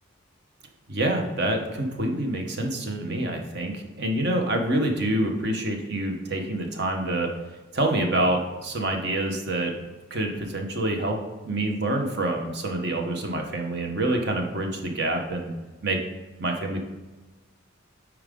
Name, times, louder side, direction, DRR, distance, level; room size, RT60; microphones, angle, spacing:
voice 1, 0.9-7.3 7.7-9.7 10.1-11.2 11.4-15.5 15.8-16.0 16.4-16.8, right 1 dB, 55° right, 3 dB, 1.1 m, -26 dB
8.8 x 4.8 x 3.8 m, 1.2 s
head